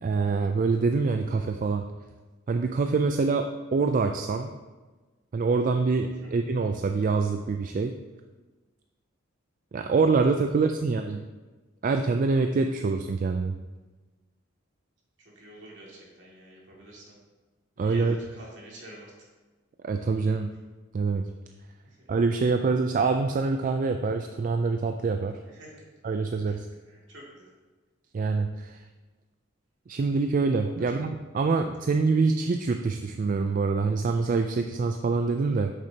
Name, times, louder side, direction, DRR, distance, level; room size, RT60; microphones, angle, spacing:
voice 1, 0.0-1.8 2.5-4.5 5.3-7.9 9.7-11.2 11.8-13.5 17.8-18.2 19.8-20.5 20.9-21.2 22.1-25.3 26.0-26.7 28.1-28.8 29.9-35.7, right 4 dB, 40° right, 5 dB, 0.3 m, -25 dB
voice 2, 10.6-11.0 15.4-17.2 17.8-19.1 21.8-22.0 25.4-25.8 26.9-27.5 30.8-30.9, right 1 dB, 65° right, -4 dB, 2.2 m, -48 dB
8.5 x 6.7 x 2.8 m, 1.2 s
head